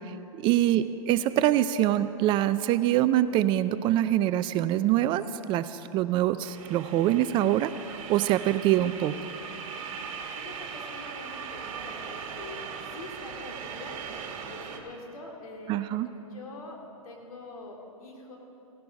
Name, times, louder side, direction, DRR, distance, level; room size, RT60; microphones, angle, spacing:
voice 1, 0.0-9.1 15.7-16.1, right 13 dB, 25° right, 13 dB, 0.3 m, -25 dB
sound 1, 6.4-14.8, right 6 dB, 60° right, 1.8 m, -39 dB
voice 2, 10.3-12.6 12.9-14.0 14.5-18.4, left 2 dB, 75° left, 0 dB, 2.8 m, -44 dB
16.5 x 11.0 x 5.3 m, 2.9 s
hypercardioid pair, 120°, 18 cm